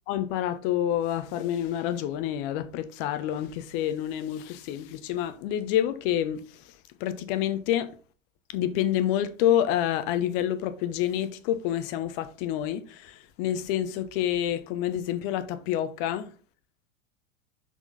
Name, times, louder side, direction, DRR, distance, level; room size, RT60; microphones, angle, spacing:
voice 1, 0.1-6.7 7.0-7.9 8.5-16.3, left 11 dB, 45° left, 1.0 m, -28 dB
6.3 x 5.7 x 4.0 m
figure-of-eight pair, 90°, 39 cm